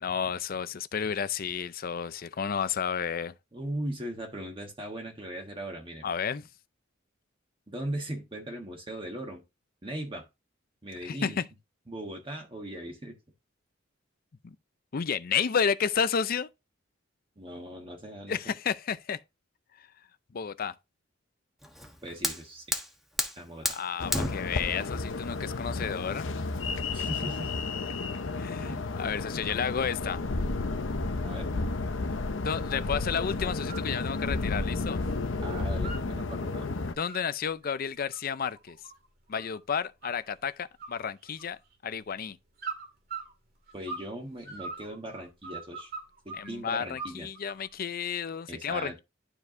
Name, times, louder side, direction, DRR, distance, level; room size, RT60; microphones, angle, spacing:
voice 1, 0.0-3.3 6.0-6.5 11.0-11.5 14.4-14.6 14.9-16.5 18.3-19.2 20.3-20.7 23.6-26.3 28.4-30.2 32.4-35.0 37.0-38.8 39.3-42.4 46.4-49.0, left 7 dB, 50° left, 0.5 m, -31 dB
voice 2, 3.5-6.1 7.7-9.4 9.8-10.2 10.8-11.4 11.9-13.1 17.4-18.5 22.0-22.6 23.4-23.7 25.7-25.8 26.9-27.5 28.5-28.9 31.2-31.5 35.4-36.7 43.7-45.9 46.2-47.3 48.5-49.0, right 1 dB, 30° right, 1.4 m, -39 dB
Fire, 21.6-27.6, equal, ahead, 1.1 m, -35 dB
sound 1, 24.0-36.9, left 3 dB, 80° left, 0.8 m, -32 dB
sound 2, 33.7-33.9 34.2-35.2 35.5-36.4 36.8-39.6 40.0-40.5 40.8-41.8 42.6-44.1 44.4-46.5 47.0-47.7, right 4 dB, 55° right, 2.1 m, -42 dB
12.0 x 4.6 x 2.6 m
head